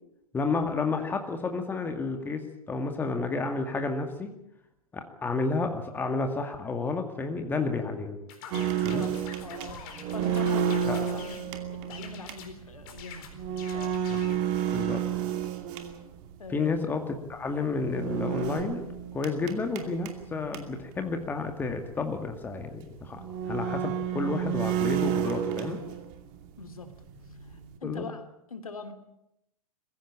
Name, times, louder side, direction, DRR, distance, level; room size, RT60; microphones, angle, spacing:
voice 1, 0.3-4.3 4.9-8.2 8.8-9.0 10.9-11.0 14.1-14.2 14.7-15.0 16.5-18.9 19.1-23.2 23.5-25.8 27.8-28.0, left 4 dB, 10° left, 6 dB, 2.1 m, -31 dB
sound 1, 8.3-11.5 11.9-12.5 12.9-14.4, left 7 dB, 40° left, 4.2 m, -46 dB
sound 2, 8.5-16.3 17.8-20.9 21.2-21.3 21.6-21.7 22.5-22.6 23.1-26.3 26.6-27.8, right 9 dB, 35° right, 2.6 m, -31 dB
voice 2, 9.4-11.4 11.7-14.0 16.4-16.7 26.6-26.9 27.3-28.9, left 4 dB, 75° left, 8 dB, 2.8 m, -43 dB
22.5 x 15.5 x 8.7 m, 0.83 s
figure-of-eight pair, 110°, 18 cm